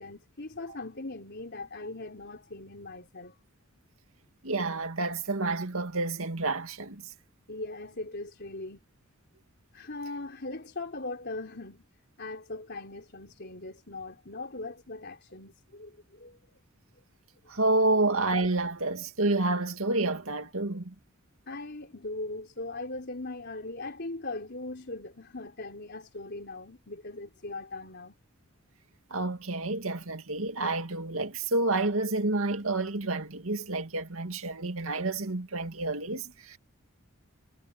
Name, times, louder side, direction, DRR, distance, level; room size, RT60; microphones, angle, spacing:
voice 1, 0.0-3.4 7.5-8.8 9.7-11.9 12.2-16.6 21.5-28.2, left 2 dB, 55° left, 4.0 m, -40 dB
voice 2, 4.4-7.0 17.5-20.9 29.1-36.6, right 2 dB, 80° right, 2.2 m, -29 dB
head